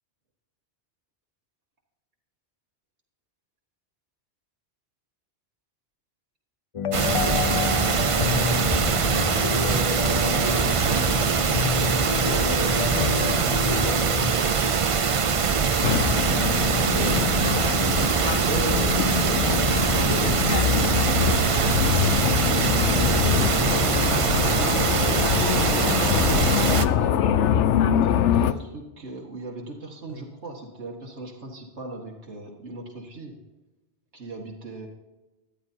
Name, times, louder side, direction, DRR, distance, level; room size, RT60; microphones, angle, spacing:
sound 1, 6.7-14.3, left 7 dB, 50° left, 0.4 m, -29 dB
sound 2, 6.9-26.9, right 6 dB, 40° right, 0.4 m, -23 dB
voice 1, 10.1-14.7 15.3-17.2 24.2-27.4 28.0-33.4 34.1-34.9, right 2 dB, 75° right, -2 dB, 2.1 m, -39 dB
sound 3, 15.8-28.5, left 9 dB, 85° left, 0.9 m, -24 dB
voice 2, 16.8-17.3 18.3-22.4 22.8-23.4 30.1-30.2, right 2 dB, 25° left, -4 dB, 4.3 m, -36 dB
14.0 x 10.0 x 2.8 m, 1.1 s
omnidirectional pair, 1.2 m